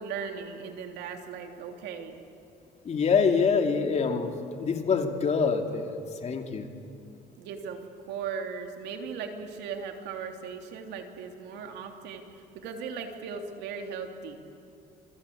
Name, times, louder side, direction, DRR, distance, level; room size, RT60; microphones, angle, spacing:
voice 1, 0.0-2.2 7.4-14.4, right 6 dB, 85° right, 4 dB, 3.2 m, -38 dB
voice 2, 2.8-6.7, left 5 dB, 40° left, 4 dB, 2.8 m, -26 dB
26.5 x 24.0 x 8.7 m, 2.5 s
cardioid pair, 110°, 17 cm